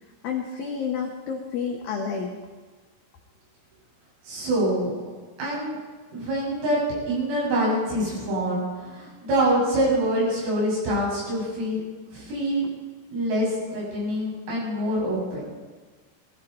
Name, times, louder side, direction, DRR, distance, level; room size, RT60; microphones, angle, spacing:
voice 1, 0.2-2.4, left 6 dB, 75° left, 1 dB, 2.1 m, -30 dB
voice 2, 4.2-4.9 5.4-5.8 6.1-6.8 7.1-11.8 12.1-12.7 13.1-15.4, right 1 dB, 80° right, -5 dB, 9.4 m, -25 dB
19.5 x 15.5 x 4.4 m, 1.4 s
omnidirectional pair, 5.9 m